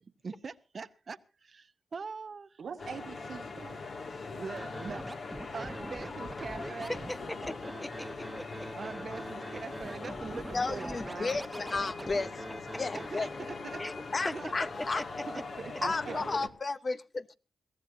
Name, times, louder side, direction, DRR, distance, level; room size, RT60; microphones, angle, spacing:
voice 1, 0.0-2.6 4.3-7.0 8.7-11.4 12.9-13.8 14.3-14.5 15.3-16.5, right 5 dB, 60° right, 0.7 m, -43 dB
voice 2, 2.6-3.8 15.8-16.3, right 6 dB, 75° right, 1.5 m, -42 dB
sound 1, 2.8-16.5, left 3 dB, 65° left, 2.1 m, -42 dB
Scratching (performance technique), 4.6-13.1, right 1 dB, 15° right, 0.9 m, -43 dB
voice 3, 6.9-8.7 12.7-12.8 13.8-14.0 14.2-14.3 14.6-15.4, left 1 dB, 20° left, 1.0 m, -39 dB
voice 4, 10.5-12.4 12.8-13.3 14.1-15.0 15.8-17.3, left 3 dB, 45° left, 0.7 m, -33 dB
22.5 x 16.0 x 2.7 m
cardioid pair, 60°, 0 cm